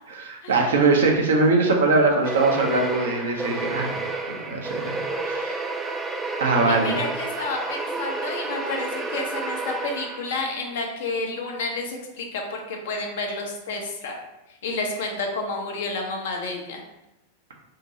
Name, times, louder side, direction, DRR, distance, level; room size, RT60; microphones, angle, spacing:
voice 1, 0.2-4.0 4.4-5.6 6.4-7.0, right 3 dB, 65° right, 1 dB, 0.6 m, -21 dB
sound 1, 2.2-10.5, right 3 dB, 15° right, 0.4 m, -30 dB
voice 2, 6.7-14.2 14.5-16.8, left 3 dB, 55° left, 1 dB, 0.6 m, -30 dB
2.8 x 2.6 x 4.0 m, 0.94 s
figure-of-eight pair, 90°, 0 cm